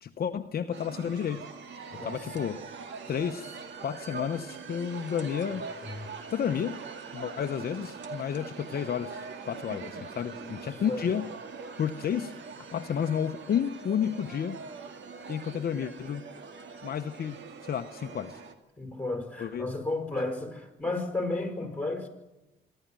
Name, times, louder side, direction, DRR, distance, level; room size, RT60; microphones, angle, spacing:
voice 1, 0.0-1.5 2.0-2.6 3.1-5.7 6.3-6.8 7.1-11.3 11.8-12.3 12.7-14.6 15.3-16.2 16.8-18.4 19.4-19.7, left 8 dB, 50° left, 0.9 m, -31 dB
sound 1, 0.7-18.5, right 5 dB, 65° right, 2.1 m, -43 dB
voice 2, 1.9-2.3 5.5-6.1 10.3-10.5 10.9-11.1 18.8-22.1, left 2 dB, 5° left, 5.3 m, -33 dB
25.5 x 12.5 x 9.0 m
cardioid pair, 90°, 20 cm